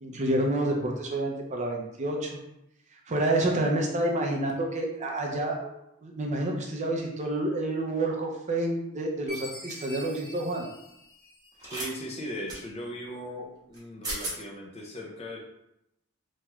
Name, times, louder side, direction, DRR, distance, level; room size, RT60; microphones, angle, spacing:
voice 1, 0.0-2.4 3.1-5.7 6.0-10.7, right 1 dB, 35° right, 0 dB, 0.5 m, -28 dB
Chime, 9.3-11.8, left 1 dB, 10° left, 1.2 m, -44 dB
sound 1, 9.7-9.9 11.6-11.9 12.5-12.6 13.7-13.8 14.0-14.4, right 1 dB, 20° right, 0.9 m, -35 dB
voice 2, 11.7-15.4, equal, 30° left, 0 dB, 0.5 m, -38 dB
3.0 x 3.0 x 2.3 m, 0.84 s
head